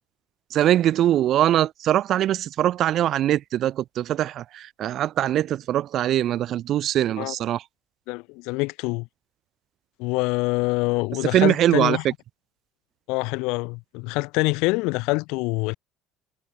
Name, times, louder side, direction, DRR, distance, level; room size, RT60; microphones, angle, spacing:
voice 1, 0.5-7.6 11.3-12.1, right 12 dB, 55° right, 1.0 m, -22 dB
voice 2, 8.1-9.1 10.0-12.0 13.1-15.7, left 26 dB, 80° left, 3.2 m, -25 dB
supercardioid pair, 100°, 0 cm